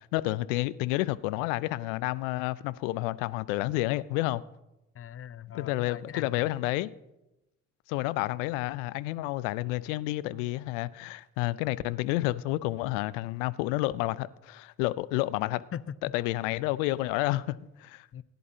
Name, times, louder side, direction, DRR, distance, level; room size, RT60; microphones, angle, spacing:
voice 1, 0.0-4.4 5.5-6.9 7.9-15.6 16.1-18.1, left 18 dB, 75° left, 0.5 m, -30 dB
voice 2, 4.9-6.5 15.3-16.0 18.1-18.2, left 9 dB, 35° left, 0.6 m, -41 dB
20.5 x 11.0 x 2.8 m
hypercardioid pair, 40°, 38 cm